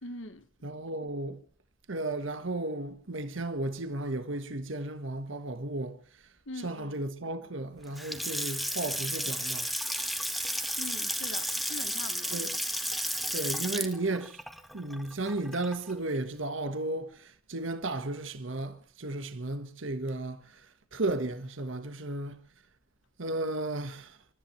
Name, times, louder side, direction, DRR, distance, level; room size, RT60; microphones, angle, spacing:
voice 1, 0.0-0.5 6.4-7.0 10.8-12.4, left 2 dB, 65° left, 1.5 m, -42 dB
voice 2, 0.6-1.4 1.9-6.0 6.6-10.0 12.3-12.5 13.3-14.4 14.7-20.6 20.9-22.4 23.2-24.2, right 2 dB, 65° right, 1.5 m, -34 dB
Water tap faucet / Sink (filling or washing) / Splash splatter, 7.8-15.9, equal, ahead, 1.5 m, -33 dB
29.0 x 14.0 x 3.2 m
head